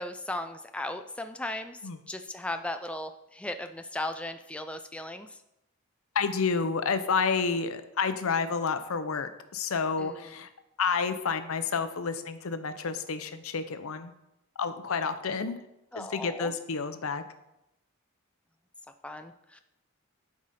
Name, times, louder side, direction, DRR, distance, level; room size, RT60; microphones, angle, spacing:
voice 1, 0.0-1.8 2.1-5.4 10.0-10.3 15.9-16.5 19.0-19.6, left 1 dB, 5° left, 7 dB, 0.3 m, -37 dB
voice 2, 6.1-10.5 10.8-14.1 14.6-15.6 16.0-17.2, left 5 dB, 75° left, 10 dB, 0.7 m, -30 dB
11.5 x 4.8 x 4.2 m, 0.88 s
head